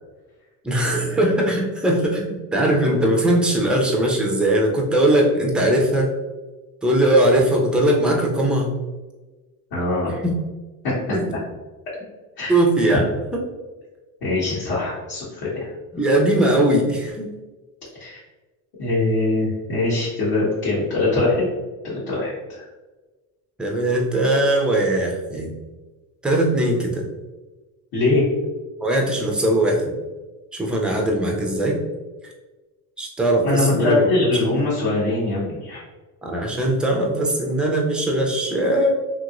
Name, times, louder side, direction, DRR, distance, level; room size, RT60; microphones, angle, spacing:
voice 1, 0.6-6.1 6.8-8.8 10.2-10.3 11.1-11.2 12.5-13.1 13.3-13.4 15.9-17.3 23.6-25.5 26.2-27.0 28.8-29.8 30.5-31.8 33.0-34.1 36.2-38.9, right 1 dB, ahead, -1 dB, 0.4 m, -20 dB
voice 2, 9.7-10.1 12.4-12.5 14.2-15.7 18.0-18.2 18.8-21.5 21.8-22.7 27.9-28.2 33.4-35.8, left 2 dB, 55° left, -9 dB, 1.5 m, -22 dB
2.9 x 2.9 x 2.5 m, 1.2 s
supercardioid pair, 105°, 46 cm